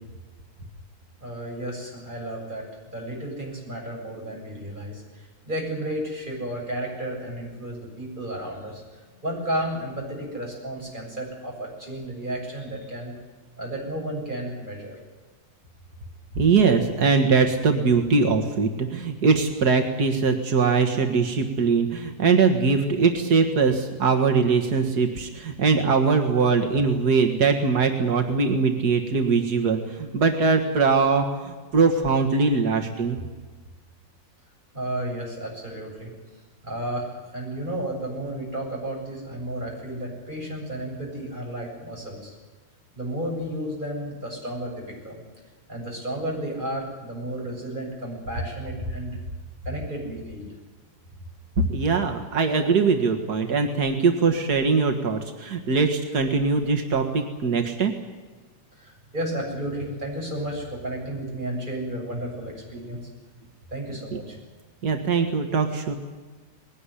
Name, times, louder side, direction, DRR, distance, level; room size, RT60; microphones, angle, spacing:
voice 1, 1.2-8.8 9.2-13.1 13.6-15.0 34.7-36.1 36.6-42.3 43.0-45.2 45.7-49.2 49.6-50.5 58.8-63.0 63.7-64.4, right 1 dB, 30° right, -2 dB, 7.8 m, -32 dB
voice 2, 16.4-33.2 51.7-57.9 64.1-64.2 64.8-65.9, right 4 dB, 90° right, 5 dB, 2.3 m, -21 dB
20.5 x 18.5 x 10.0 m, 1.3 s
omnidirectional pair, 1.7 m